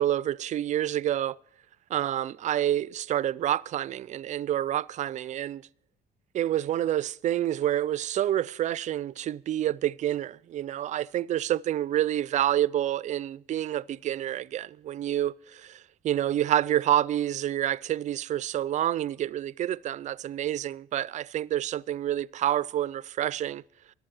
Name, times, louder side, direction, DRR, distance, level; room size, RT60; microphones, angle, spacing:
voice 1, 0.0-1.4 1.9-5.6 6.3-23.6, right 12 dB, 45° right, 0.4 m, -28 dB
14.0 x 11.5 x 4.4 m
cardioid pair, 110°, 17 cm